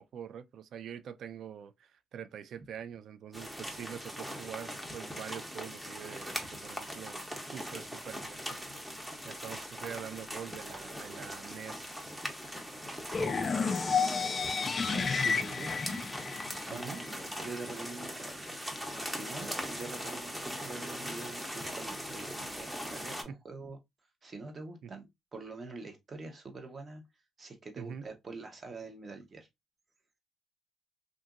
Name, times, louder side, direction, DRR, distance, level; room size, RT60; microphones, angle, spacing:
voice 1, 0.0-7.3 7.5-8.7 9.2-12.1 13.2-14.4 16.7-17.0 23.3-23.4 24.8-24.9 27.8-28.0, right 8 dB, 70° right, 0.3 m, -45 dB
sound 1, 3.3-23.2, equal, 5° right, 0.7 m, -41 dB
sound 2, 13.1-17.1, left 5 dB, 40° left, 0.3 m, -31 dB
voice 2, 14.8-16.0 16.5-18.5 18.8-23.8 24.2-27.0 27.4-29.5, right 3 dB, 40° right, 0.9 m, -45 dB
2.8 x 2.5 x 2.4 m
cardioid pair, 90°, 0 cm